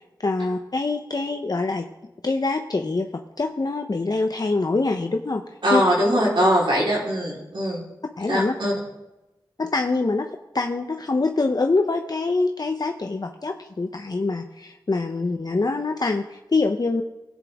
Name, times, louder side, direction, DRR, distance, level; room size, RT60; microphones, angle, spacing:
voice 1, 0.2-1.9 2.2-5.4 5.7-5.8 8.2-8.5 9.6-10.3 10.5-17.0, left 3 dB, 50° left, 4 dB, 0.7 m, -24 dB
voice 2, 5.6-7.8 8.3-8.7, equal, 75° right, -5 dB, 3.7 m, -21 dB
16.0 x 8.1 x 3.5 m, 1.0 s
cardioid pair, 45°, 8 cm